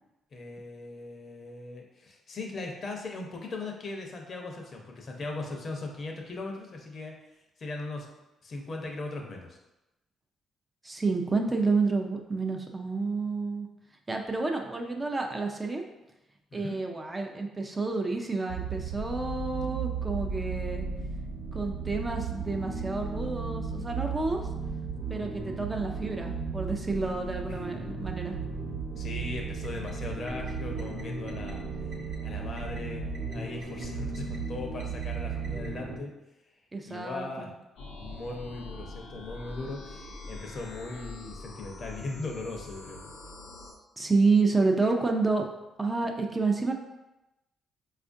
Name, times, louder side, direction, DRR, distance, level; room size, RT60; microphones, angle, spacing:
voice 1, 0.3-7.2 7.6-8.1 8.4-9.6 16.5-16.7 27.5-27.6 29.0-31.7 32.2-33.0 33.3-36.1 36.9-37.5 38.0-43.1, left 3 dB, 50° left, 1 dB, 0.6 m, -39 dB
voice 2, 10.8-13.7 14.1-15.8 16.5-20.9 21.5-24.4 25.1-28.4 36.7-37.5 44.0-45.5 45.8-46.7, right 3 dB, 20° right, 3 dB, 0.4 m, -29 dB
sound 1, 18.5-36.0, right 4 dB, 60° right, 0.7 m, -35 dB
sound 2, 37.8-43.7, left 2 dB, 85° left, 0.6 m, -44 dB
4.2 x 2.4 x 2.5 m, 0.96 s
cardioid pair, 90°, 0 cm